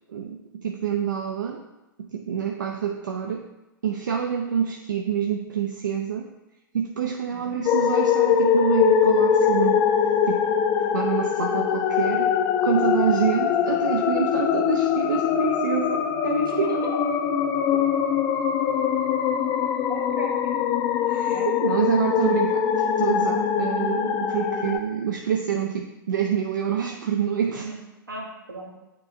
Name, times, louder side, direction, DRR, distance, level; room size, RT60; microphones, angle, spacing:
voice 1, 0.1-1.6 2.0-3.4 3.8-6.3 6.7-9.8 10.2-10.4 10.9-12.3 12.6-16.8 21.1-27.7, right 8 dB, 60° right, 3 dB, 0.5 m, -27 dB
sound 1, 7.6-24.8, left 8 dB, 25° left, 0.4 m, -22 dB
voice 2, 16.4-17.0 19.9-20.5 21.3-21.5 27.6-27.8 28.1-28.7, right 2 dB, 80° right, -1 dB, 1.4 m, -37 dB
9.2 x 3.2 x 3.7 m, 1.0 s
figure-of-eight pair, 105°, 11 cm